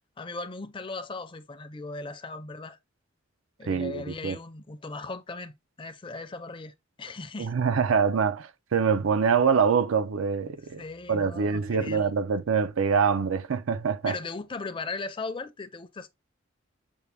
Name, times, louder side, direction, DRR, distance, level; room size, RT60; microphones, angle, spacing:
voice 1, 0.2-2.8 3.6-7.5 10.8-12.1 14.1-16.1, left 3 dB, 25° left, 0.5 m, -38 dB
voice 2, 3.7-4.4 7.4-10.8 11.1-14.2, right 6 dB, 85° right, 0.5 m, -25 dB
7.0 x 2.3 x 3.3 m
head